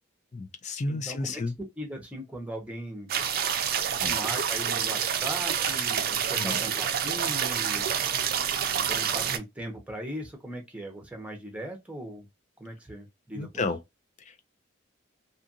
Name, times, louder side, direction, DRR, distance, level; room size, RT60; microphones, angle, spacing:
voice 1, 0.3-1.5 4.0-4.1 6.4-6.6 13.4-13.8, left 3 dB, 35° left, 0.4 m, -31 dB
voice 2, 0.9-3.1 4.0-7.9 8.8-12.3 12.6-13.6, equal, 5° right, 0.8 m, -39 dB
sound 1, 3.1-9.4, right 8 dB, 50° right, 0.4 m, -28 dB
2.7 x 2.5 x 2.6 m
head